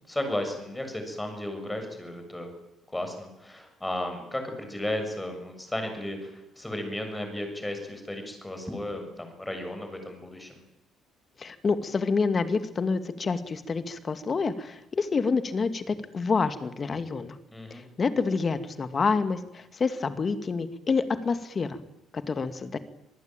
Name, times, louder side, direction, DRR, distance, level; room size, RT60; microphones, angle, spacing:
voice 1, 0.1-2.5 2.9-10.6 17.5-17.8, left 1 dB, 10° left, 6 dB, 7.0 m, -34 dB
voice 2, 11.4-17.4 17.7-21.8 22.1-22.8, left 4 dB, 30° left, 10 dB, 2.3 m, -28 dB
25.5 x 19.5 x 9.2 m, 0.90 s
cardioid pair, 130°, 0 cm